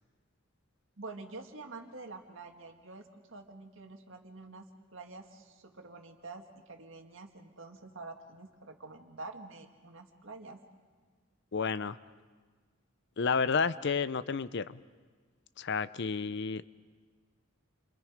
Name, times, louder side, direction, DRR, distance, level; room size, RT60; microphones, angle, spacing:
voice 1, 1.0-10.6, right 3 dB, 65° right, 4 dB, 2.1 m, -47 dB
voice 2, 11.5-12.0 13.2-14.8 15.6-16.6, left 5 dB, 55° left, 15 dB, 0.6 m, -31 dB
29.5 x 25.0 x 5.1 m, 1.5 s
head